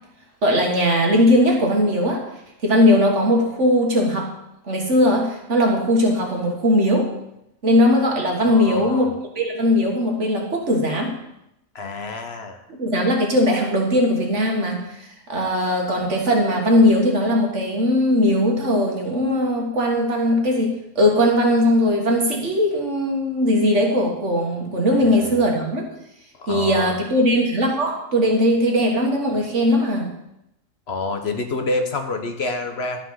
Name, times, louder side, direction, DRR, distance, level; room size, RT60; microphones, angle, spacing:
voice 1, 0.4-2.2 2.6-4.3 4.7-7.1 7.6-11.1 12.8-25.8 26.5-30.1, left 1 dB, 60° right, 0 dB, 1.9 m, -19 dB
voice 2, 8.5-9.1 11.7-12.6 25.0-25.4 26.4-27.0 30.9-33.0, left 3 dB, 55° left, 5 dB, 1.2 m, -28 dB
12.0 x 6.0 x 5.7 m, 0.83 s
omnidirectional pair, 1.4 m